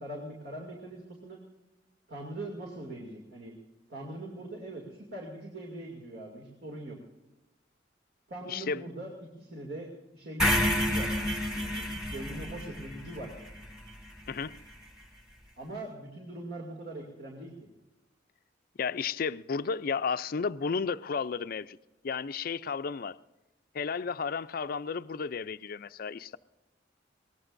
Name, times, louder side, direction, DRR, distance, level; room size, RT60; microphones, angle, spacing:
voice 1, 0.0-1.4 2.1-3.5 3.9-7.0 8.3-9.1 9.4-11.1 11.6-13.3 15.6-17.5, right 1 dB, 60° right, 2.5 m, -41 dB
voice 2, 8.5-8.8 14.3-14.5 18.8-21.8 22.0-23.2 23.7-26.4, left 5 dB, 50° left, 0.4 m, -33 dB
sound 1, 10.4-14.5, left 1 dB, 5° right, 1.7 m, -30 dB
22.5 x 18.5 x 2.6 m
head